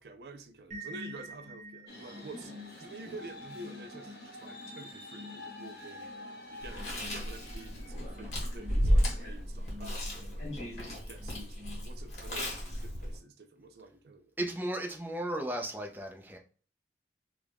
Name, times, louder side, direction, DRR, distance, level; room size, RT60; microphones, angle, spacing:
voice 1, 0.0-6.1 6.5-10.5 10.8-14.3, right 2 dB, 65° right, 0.4 m, -49 dB
sound 1, 0.7-12.3, left 1 dB, 45° right, 0.9 m, -50 dB
sound 2, 1.9-9.4, left 1 dB, 60° left, 0.9 m, -48 dB
Chewing mastication, 6.6-13.2, equal, 40° left, 1.4 m, -33 dB
voice 2, 14.4-16.4, right 1 dB, 10° right, 0.5 m, -35 dB
3.2 x 2.4 x 3.3 m
head